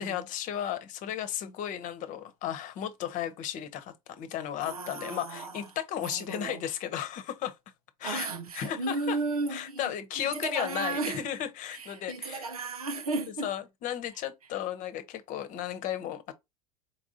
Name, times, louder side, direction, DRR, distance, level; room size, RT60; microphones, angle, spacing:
voice 1, 0.0-7.5 8.0-8.3 8.5-9.2 9.5-12.5 13.4-16.3, left 10 dB, 45° left, 0.9 m, -34 dB
voice 2, 4.6-5.5 6.1-6.6 8.0-9.9 10.2-11.2 11.7-13.5, right 3 dB, 80° right, 0.7 m, -34 dB
4.5 x 3.6 x 2.7 m
figure-of-eight pair, 75°, 18 cm